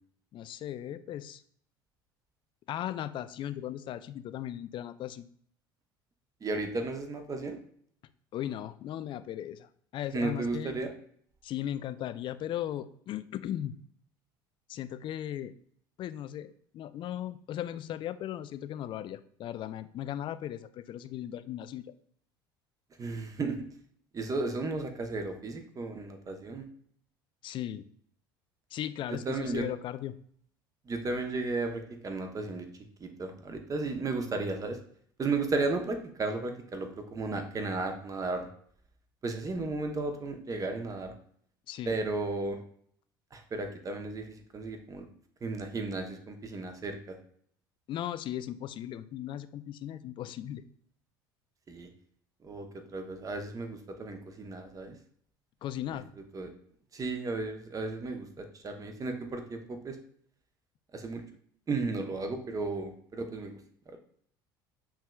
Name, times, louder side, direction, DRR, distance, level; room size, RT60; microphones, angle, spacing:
voice 1, 0.3-1.4 2.7-5.3 8.3-10.8 11.4-13.7 14.7-15.5 16.0-21.9 27.4-27.9 28.7-30.1 41.7-42.0 47.9-50.6 55.6-56.1, left 11 dB, 45° left, 13 dB, 0.3 m, -37 dB
voice 2, 6.4-7.6 10.1-10.9 23.0-23.6 24.1-26.6 29.2-29.7 30.9-32.7 33.0-34.8 35.2-38.5 39.2-41.1 41.8-42.6 43.3-45.1 45.4-47.2 51.7-51.9 52.4-55.0 56.3-56.5 56.9-60.0 60.9-61.2 61.7-63.6 63.9-64.0, right 3 dB, 30° right, 6 dB, 0.9 m, -34 dB
6.0 x 3.1 x 2.3 m, 0.62 s
hypercardioid pair, 70°, 12 cm